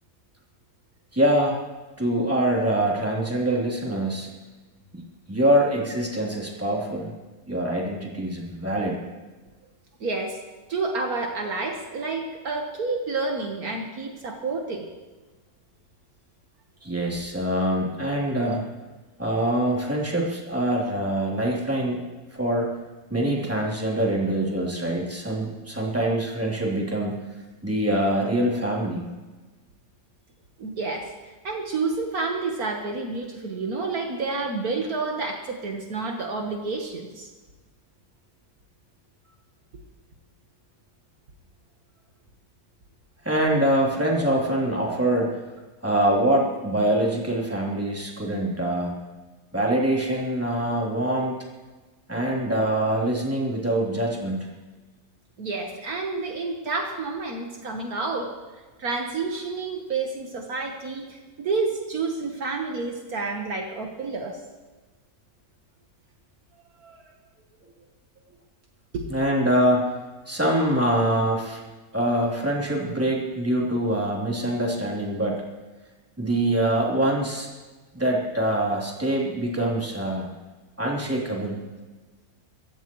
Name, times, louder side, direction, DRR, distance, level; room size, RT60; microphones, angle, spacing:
voice 1, 1.1-1.6 2.0-4.3 5.3-7.1 7.5-9.0 16.8-18.7 19.2-22.0 22.3-22.7 23.1-29.1 43.2-45.4 45.8-49.0 49.5-51.3 52.1-54.5 69.0-69.9 70.3-71.6 71.9-75.4 76.2-77.5 77.9-80.3 80.8-81.6, right 1 dB, 10° right, -3 dB, 3.2 m, -24 dB
voice 2, 10.0-10.4 10.7-14.9 30.6-37.3 55.4-58.3 58.8-64.4 66.8-67.1 68.9-69.1, right 3 dB, 65° right, 2 dB, 1.8 m, -29 dB
24.0 x 15.5 x 3.1 m, 1.3 s
omnidirectional pair, 1.7 m